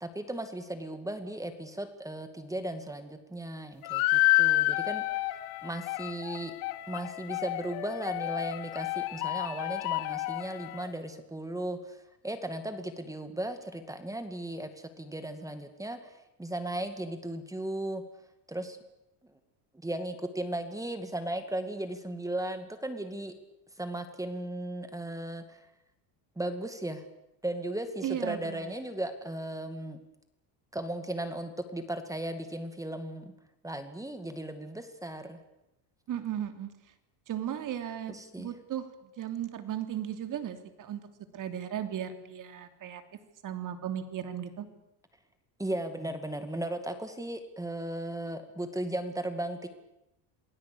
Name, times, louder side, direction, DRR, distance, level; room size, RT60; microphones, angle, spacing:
voice 1, 0.0-6.5 6.9-18.0 18.5-18.8 19.8-23.3 23.8-25.6 26.4-27.0 27.4-30.0 30.7-33.3 33.6-35.4 38.1-38.5 45.6-49.7, right 1 dB, 5° right, 9 dB, 2.3 m, -36 dB
sound 1, 3.8-10.9, left 18 dB, 90° left, 1.7 m, -30 dB
voice 2, 28.0-28.7 36.1-36.7 37.3-41.0 41.3-43.0 43.4-44.7, right 10 dB, 40° right, 8 dB, 3.1 m, -36 dB
28.5 x 19.5 x 8.6 m, 0.87 s
cardioid pair, 140°, 47 cm